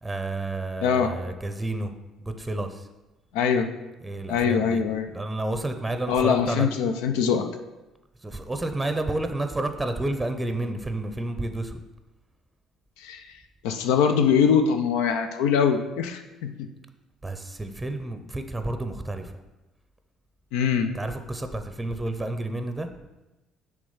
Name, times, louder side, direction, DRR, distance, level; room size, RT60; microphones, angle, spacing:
voice 1, 0.0-1.9 2.2-2.9 4.0-6.7 8.2-11.8 17.2-19.3 20.9-22.9, right 2 dB, 15° right, 8 dB, 0.7 m, -30 dB
voice 2, 0.8-1.1 3.3-3.7 4.3-5.1 6.1-7.5 13.0-13.2 13.6-16.7 20.5-20.9, left 7 dB, 80° left, 7 dB, 0.4 m, -23 dB
6.3 x 3.4 x 5.5 m, 1.1 s
hypercardioid pair, 60°, 0 cm